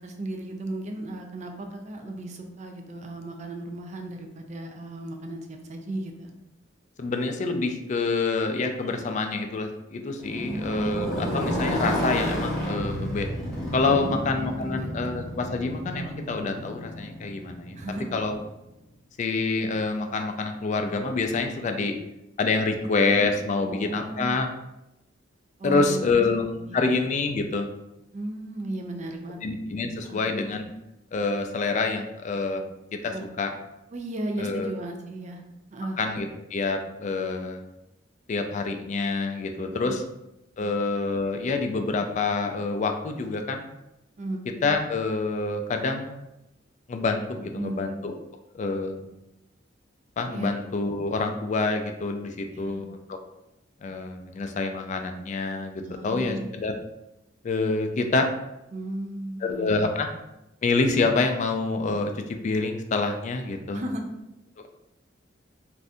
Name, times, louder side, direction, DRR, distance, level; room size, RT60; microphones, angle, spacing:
voice 1, 0.0-6.3 10.4-11.0 13.9-15.2 17.7-18.2 22.7-24.4 25.6-26.2 26.6-26.9 28.1-29.4 30.0-30.3 33.1-33.3 33.9-35.4 35.7-36.0 39.5-40.0 40.6-40.8 44.2-44.4 47.5-47.8 50.3-50.5 52.5-52.8 55.8-56.5 58.7-59.9 63.7-64.0, right 1 dB, 40° right, 4 dB, 0.4 m, -35 dB
voice 2, 7.0-13.3 13.7-17.8 18.1-18.4 19.2-21.9 22.4-24.5 25.6-27.7 29.4-30.7 31.1-33.5 34.4-34.7 36.0-37.6 38.3-40.0 40.6-43.7 44.6-46.2 46.9-48.2 48.5-49.0 50.2-53.2 53.8-55.7 56.0-56.7 57.4-58.3 59.4-60.1 60.6-63.8, left 3 dB, 40° left, 5 dB, 0.3 m, -27 dB
Motorcycle, 10.2-18.2, equal, ahead, 0.8 m, -31 dB
2.6 x 2.5 x 3.4 m, 0.89 s
head